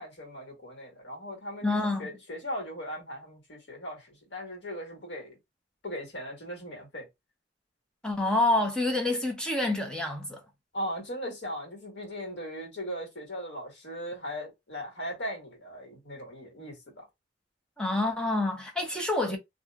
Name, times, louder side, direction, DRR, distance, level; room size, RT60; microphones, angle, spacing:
voice 1, 0.0-5.4 5.8-7.1 10.7-17.1, equal, 65° left, 1.5 m, -38 dB
voice 2, 1.6-2.1 8.0-10.4 17.8-19.4, left 2 dB, 5° left, 0.5 m, -27 dB
2.6 x 2.0 x 3.3 m
head